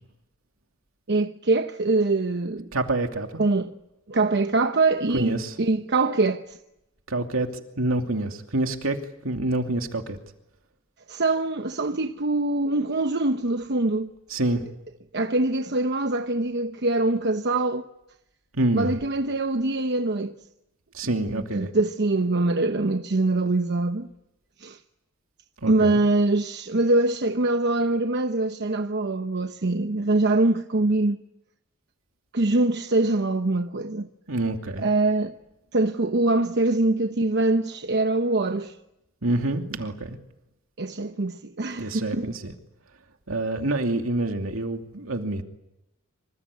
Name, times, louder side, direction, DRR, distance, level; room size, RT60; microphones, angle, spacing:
voice 1, 1.1-2.7 3.4-3.7 4.1-6.6 11.1-14.1 15.1-17.9 18.7-20.4 21.3-24.1 24.6-24.8 25.7-31.2 32.3-34.1 34.8-35.3 35.7-38.8 40.8-42.3, right 2 dB, 55° right, 1.0 m, -23 dB
voice 2, 2.7-3.4 5.1-5.5 7.1-10.2 14.3-14.7 18.5-19.0 20.9-21.7 25.6-26.0 34.3-34.9 39.2-40.2 41.8-42.5 43.3-45.4, right 2 dB, 80° right, 2.8 m, -27 dB
26.5 x 25.5 x 8.5 m
head